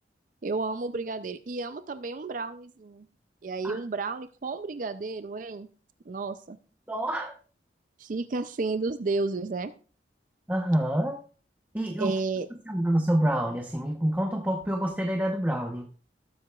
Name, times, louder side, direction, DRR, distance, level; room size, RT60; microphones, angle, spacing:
voice 1, 0.4-3.1 3.4-5.7 6.1-6.6 8.0-9.7 12.0-12.5, right 3 dB, 50° right, 11 dB, 0.5 m, -32 dB
voice 2, 6.9-7.3 10.5-11.2 11.7-12.1 12.7-15.9, right 1 dB, 10° right, 2 dB, 1.0 m, -27 dB
19.0 x 7.8 x 2.4 m, 0.37 s
head